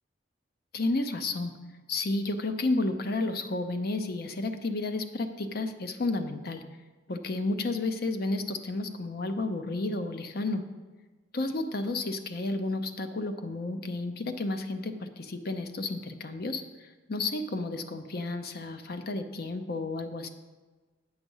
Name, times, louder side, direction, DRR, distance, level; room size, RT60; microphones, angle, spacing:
voice 1, 0.7-1.5 1.9-6.6 7.1-10.6 11.3-20.3, left 2 dB, 55° left, 8 dB, 0.7 m, -32 dB
7.9 x 7.0 x 5.5 m, 1.3 s
head